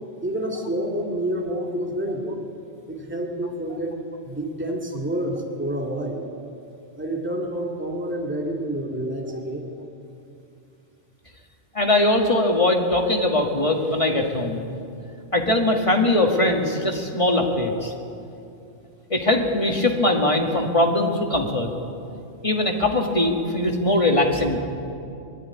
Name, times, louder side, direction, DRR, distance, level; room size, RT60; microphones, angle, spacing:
voice 1, 0.2-2.4 2.9-6.3 7.0-9.7, right 1 dB, 10° right, 0 dB, 2.1 m, -28 dB
voice 2, 11.7-14.6 15.3-17.9 19.1-21.7 22.4-24.6, left 1 dB, 25° left, 1 dB, 1.9 m, -21 dB
21.5 x 13.0 x 9.7 m, 2.6 s
omnidirectional pair, 1.3 m